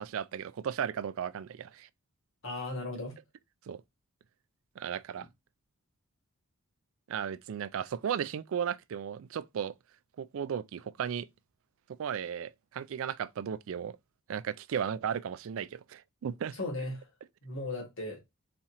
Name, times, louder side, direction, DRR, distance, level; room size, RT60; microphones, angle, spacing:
voice 1, 0.0-1.9 3.7-3.8 4.8-5.3 7.1-9.7 10.2-11.3 12.0-14.0 14.3-16.6, right 8 dB, 65° right, 0.3 m, -35 dB
voice 2, 2.4-3.2 16.5-17.1 17.4-18.2, left 2 dB, 60° left, 2.0 m, -36 dB
4.2 x 3.6 x 2.9 m
head